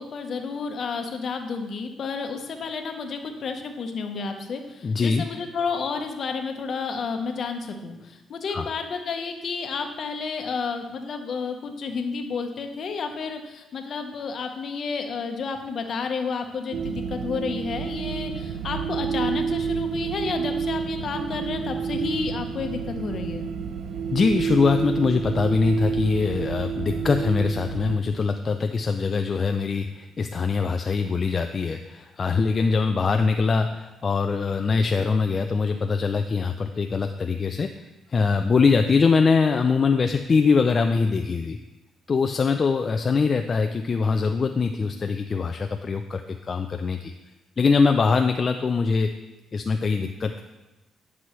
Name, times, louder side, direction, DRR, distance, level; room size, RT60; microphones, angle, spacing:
voice 1, 0.0-23.5, left 5 dB, 55° left, 5 dB, 0.9 m, -31 dB
voice 2, 4.8-5.3 8.5-8.7 24.1-37.7 38.1-41.6 42.1-47.1 47.6-49.1 49.5-50.4, left 4 dB, 40° left, 6 dB, 0.4 m, -23 dB
sound 1, 16.7-28.0, right 6 dB, 70° right, 0.6 m, -29 dB
9.7 x 6.0 x 3.1 m, 1.0 s
cardioid pair, 90°, 0 cm